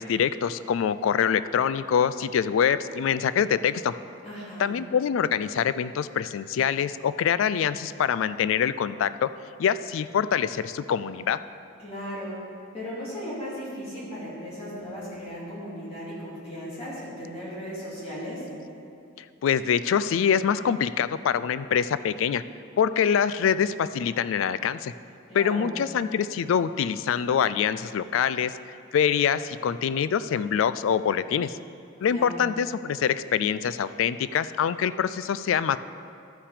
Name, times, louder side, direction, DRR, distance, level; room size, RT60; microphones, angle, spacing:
voice 1, 0.0-3.9 4.6-9.3 9.6-11.4 19.4-22.4 22.8-24.9 25.3-28.5 28.9-31.6 32.0-35.8, left 8 dB, 75° left, 14 dB, 0.3 m, -25 dB
voice 2, 4.2-4.7 11.8-12.3 12.7-18.4 25.3-25.7 32.0-32.3, equal, 30° left, -9 dB, 2.7 m, -36 dB
13.0 x 5.9 x 4.9 m, 2.5 s
head